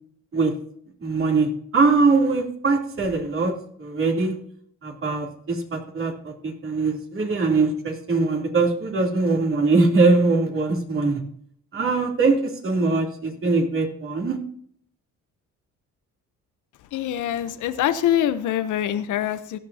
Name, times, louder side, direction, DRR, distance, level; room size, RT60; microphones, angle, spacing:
voice 1, 1.0-3.5 3.8-4.4 4.8-11.2 11.7-14.4, right 3 dB, 45° right, 0 dB, 3.2 m, -22 dB
voice 2, 16.9-19.6, left 11 dB, 80° left, 11 dB, 0.9 m, -24 dB
17.0 x 12.0 x 2.8 m, 0.65 s
cardioid pair, 90°, 30 cm